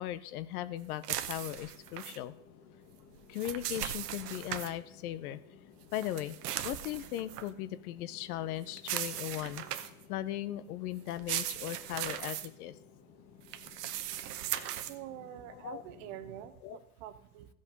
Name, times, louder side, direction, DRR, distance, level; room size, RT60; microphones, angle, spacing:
voice 1, 0.0-2.3 3.3-5.4 5.9-6.4 6.6-9.6 10.1-12.7 15.5-15.8 16.6-16.8, left 13 dB, 65° left, 15 dB, 0.8 m, -38 dB
sound 1, 1.0-2.2 3.1-4.7 5.9-7.5 8.8-10.0 11.1-12.5 13.5-14.9, right 12 dB, 80° right, 1.0 m, -38 dB
sound 2, 1.4-16.5, left 6 dB, 35° left, 1.9 m, -58 dB
voice 2, 14.8-17.5, right 11 dB, 50° right, 13 dB, 0.9 m, -46 dB
15.0 x 5.3 x 5.3 m, 0.85 s
supercardioid pair, 140°, 47 cm